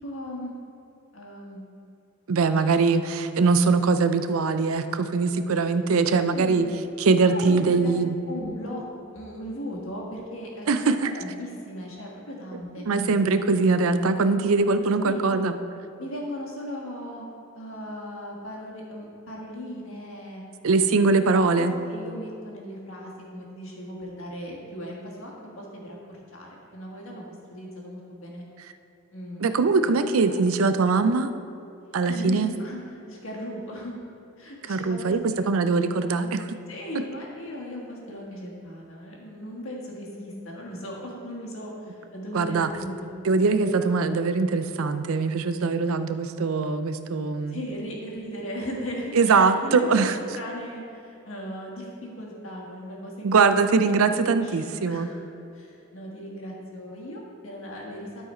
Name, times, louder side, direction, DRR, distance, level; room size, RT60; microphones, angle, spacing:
voice 1, 0.0-0.5 1.1-1.6 6.2-6.7 7.3-7.9 8.3-8.8 9.1-12.9 14.8-15.3 16.0-17.2 17.5-20.4 20.9-21.1 21.5-28.4 29.1-29.9 30.2-30.4 32.0-33.9 34.4-35.2 36.7-43.1 47.5-53.3 53.8-55.2 55.5-58.2, equal, 60° left, -2 dB, 1.7 m, -37 dB
voice 2, 2.3-6.7 7.0-8.2 10.7-11.1 12.8-15.6 20.6-21.7 29.4-31.3 31.9-32.5 34.7-35.2 35.5-36.5 42.3-42.7 43.2-47.6 49.1-50.2 53.2-55.1, right 4 dB, 70° right, 10 dB, 0.5 m, -22 dB
12.0 x 4.8 x 4.3 m, 2.9 s
head